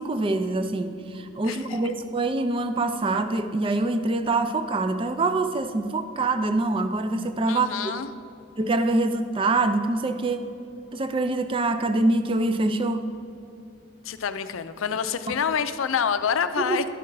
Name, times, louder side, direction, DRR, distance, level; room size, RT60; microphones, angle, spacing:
voice 1, 0.0-7.7 8.6-10.5 10.9-13.1 16.7-16.8, right 2 dB, 25° right, 9 dB, 0.3 m, -25 dB
voice 2, 1.4-1.9 7.5-8.1 14.0-16.9, left 7 dB, 70° left, 11 dB, 0.4 m, -27 dB
11.0 x 5.9 x 4.6 m, 2.6 s
head